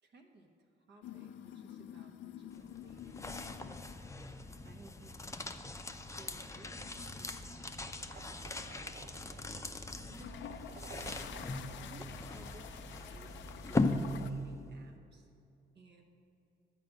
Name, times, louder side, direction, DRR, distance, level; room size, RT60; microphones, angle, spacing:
voice 1, 0.0-3.8 4.6-5.8 6.0-9.1 10.1-10.6 11.4-15.3 15.7-16.0, right 2 dB, 60° right, 2 dB, 1.2 m, -58 dB
sound 1, 1.0-4.2 4.6-5.0 6.5-8.1 8.5-8.9 9.9-14.3, left 11 dB, 70° left, 0.4 m, -49 dB
sound 2, 2.5-14.7, left 2 dB, 15° left, 0.6 m, -39 dB
sound 3, 7.7-12.2, right 5 dB, 40° right, 0.6 m, -55 dB
11.0 x 4.9 x 7.8 m, 2.6 s
cardioid pair, 90°, 20 cm